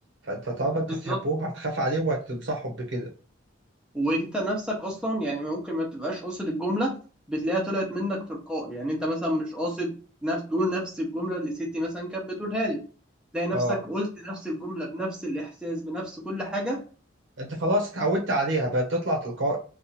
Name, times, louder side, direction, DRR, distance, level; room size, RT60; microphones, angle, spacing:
voice 1, 0.2-3.1 13.5-13.8 17.4-19.6, right 1 dB, 65° right, 0 dB, 0.8 m, -27 dB
voice 2, 0.9-1.2 3.9-7.0 7.3-10.0 10.2-12.8 13.3-16.8, equal, 5° right, -2 dB, 0.7 m, -29 dB
2.7 x 2.4 x 4.0 m, 0.37 s
head